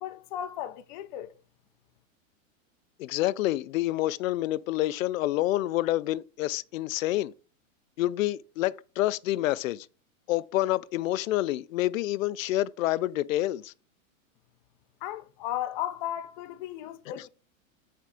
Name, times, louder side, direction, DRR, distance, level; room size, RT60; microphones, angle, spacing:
voice 1, 0.0-1.3 15.0-17.3, left 12 dB, 35° left, 0.6 m, -35 dB
voice 2, 3.0-7.3 8.0-9.9 10.3-13.7, left 15 dB, 80° left, 0.5 m, -28 dB
7.4 x 4.6 x 3.7 m
supercardioid pair, 155°, 40 cm